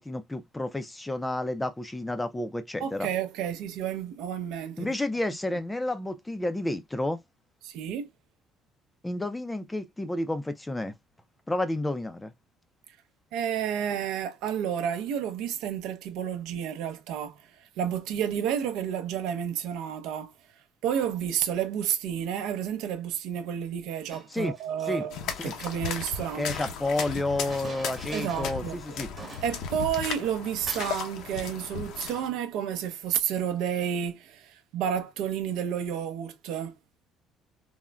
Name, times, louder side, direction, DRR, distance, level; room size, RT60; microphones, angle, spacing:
voice 1, 0.0-3.1 4.8-7.2 9.0-10.9 11.5-12.3 24.3-24.5 24.9-25.0 25.4-25.5 26.3-29.1, left 1 dB, 10° left, 0.4 m, -30 dB
voice 2, 2.8-4.9 7.6-8.1 13.3-20.3 20.8-26.5 28.1-29.0 29.4-36.7, right 9 dB, 75° right, 0.6 m, -31 dB
Chink clink, 24.1-24.9 25.5-26.8 27.5-28.6 28.9-29.0 29.2-30.4 30.7-31.2, right 3 dB, 20° right, 0.9 m, -46 dB
sound 1, 25.1-32.3, left 6 dB, 70° left, 0.7 m, -36 dB
3.6 x 2.0 x 2.2 m
cardioid pair, 130°, 0 cm